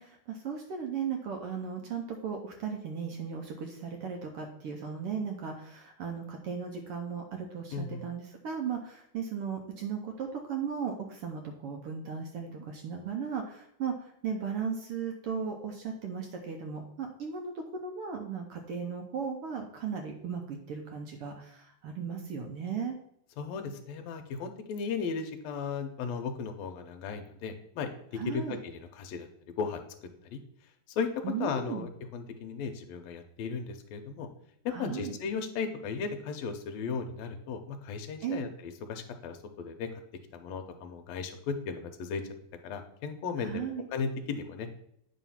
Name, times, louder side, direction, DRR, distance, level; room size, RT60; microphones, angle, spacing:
voice 1, 0.0-17.5 17.8-22.9 28.1-28.6 31.2-31.9 34.7-35.1 38.2-38.5 43.4-43.8, right 6 dB, 70° right, 3 dB, 1.4 m, -36 dB
voice 2, 7.7-8.0 23.4-27.9 28.3-29.3 29.6-29.8 30.2-30.4 30.9-31.1 31.4-34.3 34.8-40.0 40.3-42.2 42.6-44.8, left 5 dB, 75° left, 5 dB, 1.9 m, -36 dB
9.3 x 3.1 x 5.7 m, 0.71 s
omnidirectional pair, 3.4 m